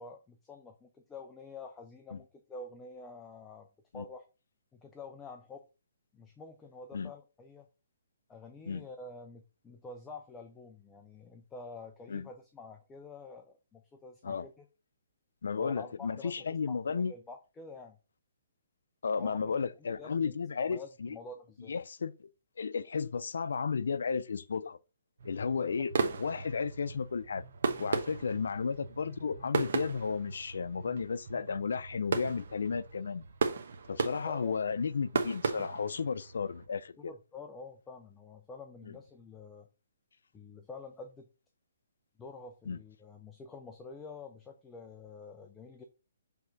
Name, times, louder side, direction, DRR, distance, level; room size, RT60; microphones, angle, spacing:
voice 1, 0.0-3.7 3.9-4.3 4.7-5.6 6.1-7.7 8.3-14.6 15.6-18.0 19.2-21.7 34.3-34.5 37.0-39.7 40.3-41.3 42.2-45.8, left 3 dB, 10° left, 0.5 m, -48 dB
voice 2, 15.4-17.1 19.0-21.2 21.7-22.3 22.6-24.8 25.2-27.4 27.8-33.3 33.9-37.0 38.8-39.0 42.7-42.8, left 5 dB, 75° left, 0.5 m, -33 dB
sound 1, 25.2-36.7, right 5 dB, 55° right, 1.1 m, -36 dB
6.9 x 3.6 x 4.0 m
hypercardioid pair, 170°, 0 cm